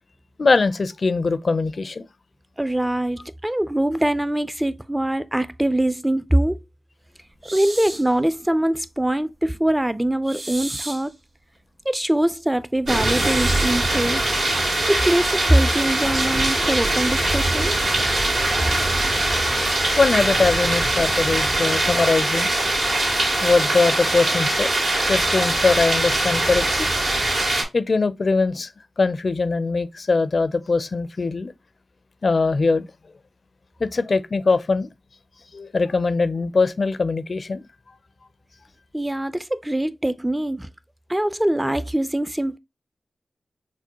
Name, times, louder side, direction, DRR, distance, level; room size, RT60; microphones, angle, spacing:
voice 1, 0.4-2.1 20.0-22.5 23.4-24.7 25.1-26.9 27.7-28.7 29.0-31.5 32.2-32.9 33.8-34.9 35.5-37.7, left 4 dB, 60° left, 0.4 m, -21 dB
voice 2, 2.6-6.6 7.5-11.1 11.9-14.2 14.9-17.8 38.9-40.7 41.1-42.6, right 1 dB, 15° right, 0.4 m, -23 dB
sound 1, 7.4-8.1 10.2-11.1 13.0-13.8, right 2 dB, 45° right, 1.8 m, -34 dB
sound 2, 12.9-27.6, right 2 dB, 80° right, 2.0 m, -22 dB
5.9 x 2.1 x 2.9 m
cardioid pair, 45°, 0 cm